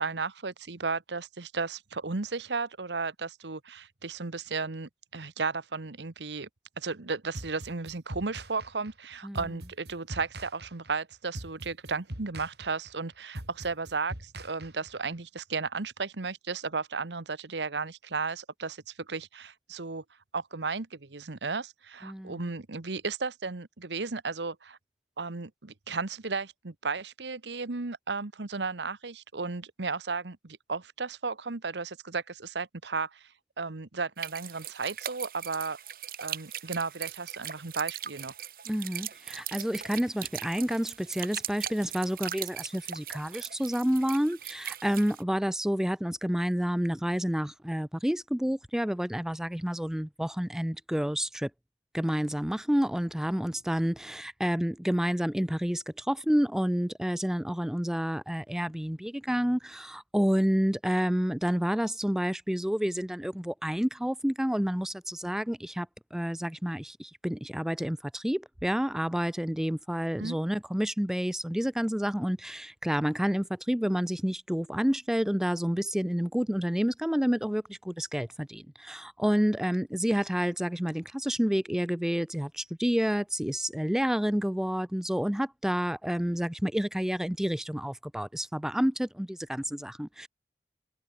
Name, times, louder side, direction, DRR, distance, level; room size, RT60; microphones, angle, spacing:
voice 1, 0.0-6.5 6.8-20.0 20.3-24.8 25.2-33.3 33.6-35.8 36.2-38.3 70.2-70.4, right 4 dB, 90° right, 1.2 m, -34 dB
sound 1, 7.3-15.2, right 1 dB, 75° right, 5.1 m, -42 dB
voice 2, 22.0-22.4 38.7-51.5 51.9-90.3, equal, 5° right, 0.3 m, -29 dB
sound 2, 34.2-45.2, right 10 dB, 55° right, 3.3 m, -40 dB
head